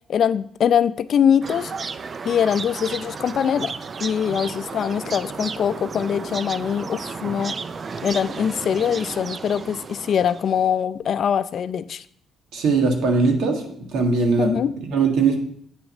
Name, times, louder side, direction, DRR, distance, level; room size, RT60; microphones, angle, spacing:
voice 1, 0.1-1.7 2.3-3.7 4.0-7.5 8.0-12.0 14.4-14.7, left 8 dB, 60° left, 14 dB, 0.4 m, -22 dB
sound 1, 1.4-10.7, right 5 dB, 40° right, 0.4 m, -33 dB
voice 2, 12.5-14.6 14.9-15.4, right 4 dB, 85° right, 3 dB, 1.7 m, -20 dB
8.3 x 5.8 x 5.3 m, 0.64 s
cardioid pair, 90°, 0 cm